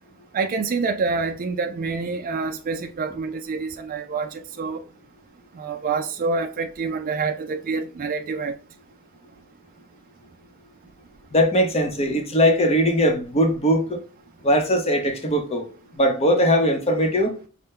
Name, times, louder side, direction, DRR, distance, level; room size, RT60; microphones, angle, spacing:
voice 1, 0.3-4.8 5.6-8.6, right 4 dB, 40° right, 0.3 m, -27 dB
voice 2, 11.3-14.0 14.4-17.4, equal, 30° left, 0.8 m, -20 dB
5.4 x 2.1 x 3.6 m
head